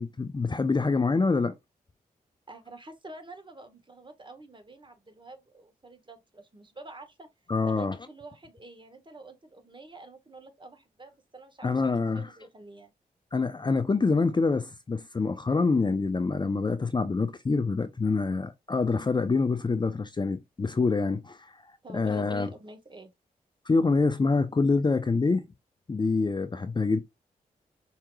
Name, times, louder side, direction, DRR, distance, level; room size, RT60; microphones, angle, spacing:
voice 1, 0.0-1.6 7.5-8.0 11.6-12.3 13.3-22.5 23.7-25.4 25.9-27.0, left 4 dB, 25° left, 0.5 m, -26 dB
voice 2, 2.5-7.3 7.7-12.9 21.8-23.1, right 2 dB, 30° right, 1.3 m, -48 dB
4.7 x 2.9 x 2.2 m
supercardioid pair, 45°, 17 cm